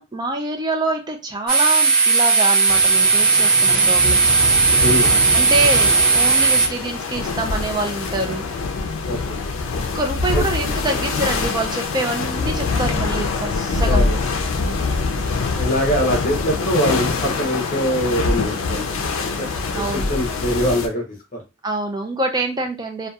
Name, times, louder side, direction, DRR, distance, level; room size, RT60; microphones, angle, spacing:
voice 1, 0.0-4.3 5.3-8.5 9.9-14.0 15.7-15.8 19.8-20.1 21.6-23.1, right 2 dB, 20° right, 4 dB, 0.4 m, -25 dB
sound 1, 1.5-6.7, right 4 dB, 50° right, 1.2 m, -16 dB
sound 2, 2.7-20.9, left 4 dB, 75° left, 0.4 m, -24 dB
voice 2, 4.8-5.1 9.1-9.4 10.3-10.4 13.9-14.2 14.6-14.8 15.5-21.0 21.3-21.4, equal, 40° left, -1 dB, 0.8 m, -23 dB
2.7 x 2.3 x 2.3 m, 0.27 s
head